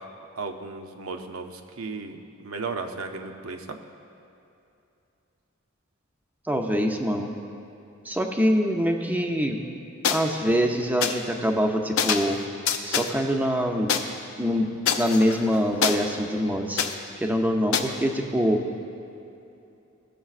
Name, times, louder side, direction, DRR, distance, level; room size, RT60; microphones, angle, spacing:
voice 1, 0.4-3.8, right 4 dB, 70° right, 5 dB, 0.6 m, -35 dB
voice 2, 6.5-7.3 8.1-9.6 10.1-12.4 12.8-13.9 14.4-14.7 15.0-16.8 17.2-18.6, equal, 10° right, 3 dB, 0.5 m, -24 dB
sound 1, 10.0-10.2 11.0-11.1 12.0-12.4 12.7-13.1 13.9-14.0 14.9-16.0 16.8-16.9 17.7-17.8, left 7 dB, 70° left, 0.5 m, -24 dB
15.5 x 6.6 x 2.4 m, 2.8 s
head